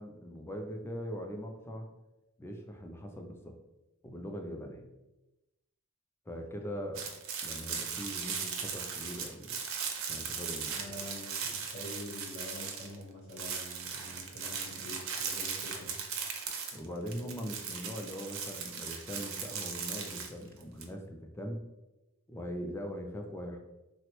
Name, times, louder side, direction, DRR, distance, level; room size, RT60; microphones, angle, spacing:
voice 1, 0.0-1.9 2.4-3.5 4.0-4.9 6.3-7.1 7.4-9.5 10.1-11.0 16.7-21.6 22.3-23.6, equal, 10° left, 3 dB, 0.3 m, -41 dB
sound 1, 6.9-13.0 13.3-20.8, right 6 dB, 70° right, 0.5 m, -38 dB
voice 2, 10.7-16.0, left 1 dB, 85° left, -6 dB, 0.9 m, -46 dB
3.6 x 2.0 x 2.9 m, 0.99 s
head